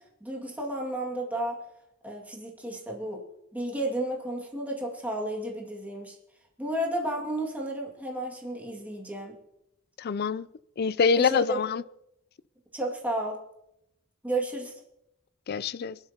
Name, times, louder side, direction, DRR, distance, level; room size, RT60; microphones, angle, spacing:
voice 1, 0.2-1.6 2.0-3.2 3.5-6.2 6.6-9.4 11.2-11.6 12.7-13.4 14.2-14.7, right 1 dB, 10° right, -1 dB, 2.1 m, -32 dB
voice 2, 10.0-10.5 10.8-11.8 15.5-16.0, left 5 dB, 50° left, 18 dB, 0.4 m, -25 dB
23.0 x 12.0 x 2.9 m, 0.84 s
head